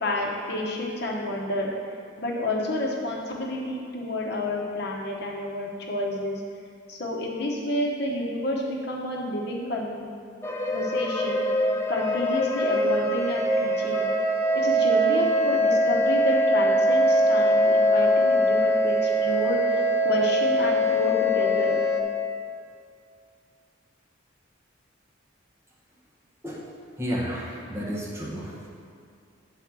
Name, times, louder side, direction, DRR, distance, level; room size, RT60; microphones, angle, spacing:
voice 1, 0.0-1.7 2.2-6.4 6.9-10.2 10.7-11.5 11.9-14.1 14.5-21.8, left 1 dB, 55° left, -2 dB, 1.0 m, -29 dB
sound 1, 10.4-22.0, equal, 15° left, 0.5 m, -22 dB
voice 2, 27.0-28.6, equal, 15° right, -7 dB, 1.4 m, -31 dB
8.9 x 4.1 x 6.0 m, 2.2 s
head